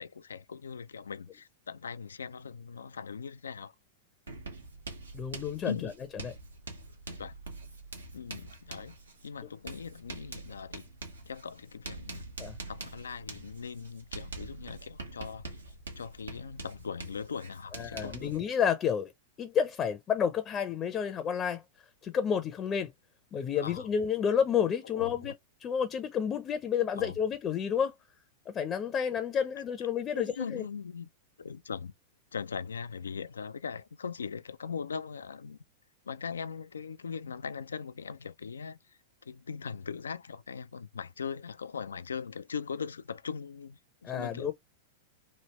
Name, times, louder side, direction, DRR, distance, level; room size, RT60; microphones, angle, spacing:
voice 1, 0.0-3.7 5.6-6.0 7.1-7.3 8.1-9.0 9.2-10.8 11.3-12.3 12.7-15.5 16.0-18.3 23.6-23.9 24.8-25.3 27.0-27.2 30.1-31.1 31.4-31.9 32.3-35.6 36.1-38.8 39.3-44.5, left 6 dB, 85° left, 0.3 m, -40 dB
Writing, 4.3-18.4, right 2 dB, 90° right, 1.0 m, -45 dB
voice 2, 5.1-5.9 6.2-6.3 12.4-12.6 17.7-19.1 19.4-21.6 22.0-22.9 23.3-25.3 25.6-27.9 28.5-30.6 44.0-44.5, left 8 dB, 30° left, 0.6 m, -30 dB
3.2 x 2.6 x 2.9 m
hypercardioid pair, 105°, 0 cm